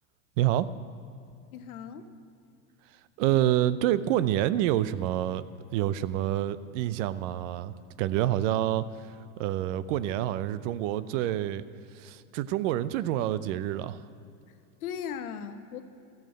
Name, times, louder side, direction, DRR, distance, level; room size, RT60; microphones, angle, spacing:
voice 1, 0.4-0.7 3.2-5.4 5.7-8.8 9.4-11.6 12.0-14.0, right 13 dB, 60° right, 16 dB, 0.6 m, -27 dB
voice 2, 1.5-2.0 14.8-15.8, left 8 dB, 85° left, 10 dB, 1.0 m, -37 dB
13.5 x 7.2 x 7.6 m, 2.6 s
supercardioid pair, 115°, 42 cm